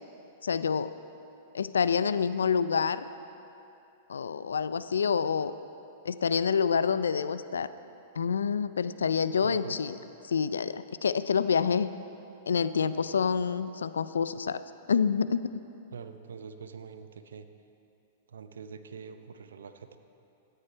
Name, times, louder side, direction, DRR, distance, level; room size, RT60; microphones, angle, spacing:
voice 1, 0.4-0.9 1.5-3.0 4.1-5.5 6.1-7.7 8.2-9.9 10.3-11.9 12.5-14.6 14.9-15.5, left 6 dB, 85° left, 14 dB, 0.4 m, -27 dB
voice 2, 9.4-9.8 15.9-17.5 18.3-20.0, right 6 dB, 80° right, 10 dB, 0.6 m, -44 dB
13.0 x 9.7 x 4.5 m, 2.8 s
hypercardioid pair, 115°, 0 cm